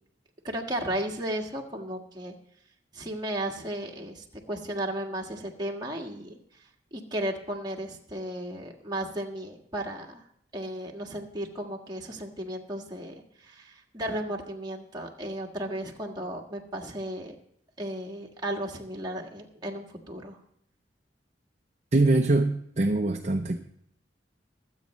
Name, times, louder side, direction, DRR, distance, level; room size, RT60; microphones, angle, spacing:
voice 1, 0.4-2.3 2.9-6.4 6.9-10.2 10.5-17.4 17.8-20.4, right 1 dB, 25° right, 0 dB, 1.6 m, -34 dB
voice 2, 21.9-23.6, right 2 dB, 40° right, 4 dB, 0.6 m, -23 dB
23.0 x 8.3 x 3.1 m, 0.71 s
head